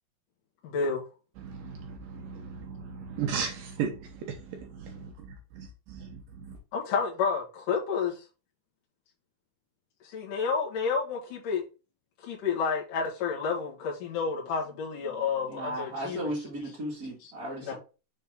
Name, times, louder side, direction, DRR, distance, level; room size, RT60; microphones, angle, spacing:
voice 1, 0.6-1.0 6.7-8.2 10.0-11.6 12.2-16.3 17.2-17.3 17.6-17.7, left 5 dB, 60° left, 3.3 m, -30 dB
voice 2, 1.4-6.6, right 6 dB, 70° right, 2.6 m, -36 dB
voice 3, 15.5-17.7, equal, 30° right, 1.8 m, -35 dB
7.5 x 4.2 x 3.7 m
omnidirectional pair, 4.7 m